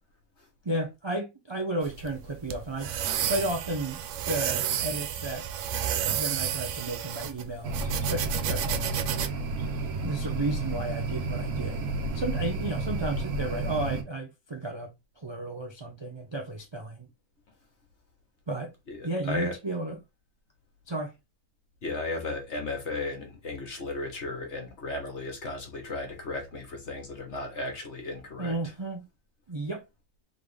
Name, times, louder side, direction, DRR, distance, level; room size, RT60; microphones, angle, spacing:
voice 1, 0.6-2.9 3.3-4.0 4.3-5.5 6.1-9.0 10.0-17.1 18.5-18.7 19.0-20.0 20.9-21.1 28.4-29.0 29.5-29.9, right 2 dB, 30° right, 0.5 m, -33 dB
sound 1, 1.8-9.3, right 9 dB, 65° right, 0.9 m, -31 dB
sound 2, 7.6-14.0, right 3 dB, 85° right, 1.5 m, -31 dB
voice 2, 18.9-19.5 21.8-28.5, left 2 dB, 50° left, 1.6 m, -35 dB
3.8 x 3.4 x 3.3 m
omnidirectional pair, 1.5 m